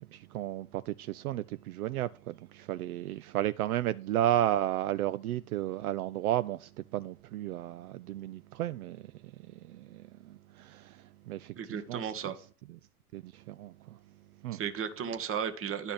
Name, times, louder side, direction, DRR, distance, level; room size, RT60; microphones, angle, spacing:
voice 1, 0.0-12.3 12.7-12.8 13.1-14.0 14.4-14.6, right 13 dB, 70° right, 0.6 m, -33 dB
voice 2, 11.5-12.4 14.5-15.9, right 7 dB, 30° right, 1.2 m, -35 dB
10.5 x 4.9 x 5.8 m
hypercardioid pair, 85°, 45 cm